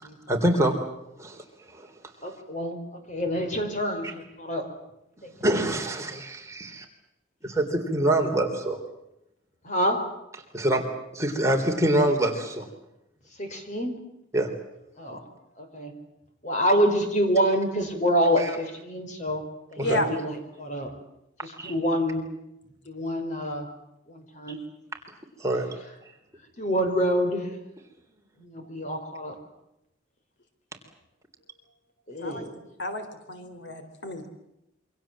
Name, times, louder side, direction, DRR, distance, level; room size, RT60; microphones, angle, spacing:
voice 1, 0.3-0.8 1.2-1.4 1.7-1.9 4.0-4.1 5.4-6.8 7.4-8.8 10.5-10.8 11.1-12.6 14.3-14.5 18.4-18.6 19.8-20.0 21.6-21.7 24.5-24.6 25.4-25.7, right 1 dB, 15° right, 2 dB, 3.5 m, -25 dB
voice 2, 2.2-2.8 3.1-4.7 9.6-10.0 13.4-13.9 15.0-15.2 15.6-15.9 16.4-19.4 19.7-20.9 21.4-22.2 22.9-23.7 24.1-24.6 26.6-27.5 28.4-29.3 32.1-32.5, equal, 40° left, 6 dB, 5.0 m, -26 dB
voice 3, 32.2-34.3, left 1 dB, 65° left, 8 dB, 3.7 m, -32 dB
27.5 x 25.0 x 7.6 m, 0.85 s
head